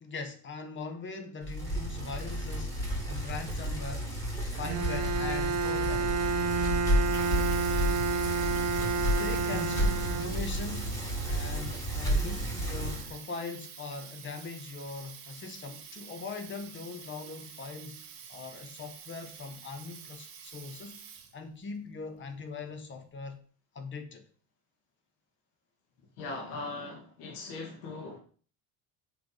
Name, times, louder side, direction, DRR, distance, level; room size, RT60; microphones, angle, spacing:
voice 1, 0.0-4.1 4.4-6.2 9.1-11.0 11.2-21.0 21.3-23.4 23.7-24.2, left 4 dB, 30° left, 0.9 m, -41 dB
Bicycle, 1.4-13.1, right 1 dB, 10° left, 2.2 m, -31 dB
Bowed string instrument, 4.6-10.8, right 4 dB, 40° right, 0.6 m, -30 dB
Water tap faucet, 7.0-21.5, right 8 dB, 75° right, 1.7 m, -47 dB
voice 2, 9.5-9.9 26.2-28.2, left 3 dB, 75° left, 1.9 m, -39 dB
6.4 x 3.5 x 4.8 m
cardioid pair, 135°, 40 cm